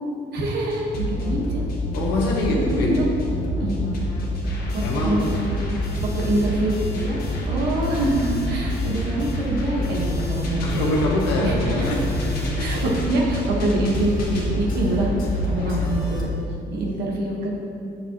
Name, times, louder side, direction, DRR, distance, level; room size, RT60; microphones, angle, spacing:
voice 1, 0.3-1.6 2.5-3.1 3.6-4.1 4.7-5.6 6.3-7.2 7.5-11.0 11.4-12.0 12.6-15.1 15.5-16.3 16.7-17.5, right 1 dB, 75° right, -2 dB, 1.4 m, -25 dB
sound 1, 0.7-16.2, left 1 dB, 65° left, 1.5 m, -27 dB
voice 2, 1.9-2.9 4.8-5.4 10.6-13.0 13.6-13.8 16.9-17.0, left 2 dB, 85° left, -3 dB, 1.0 m, -25 dB
7.3 x 6.6 x 3.0 m, 2.6 s
cardioid pair, 110°, 17 cm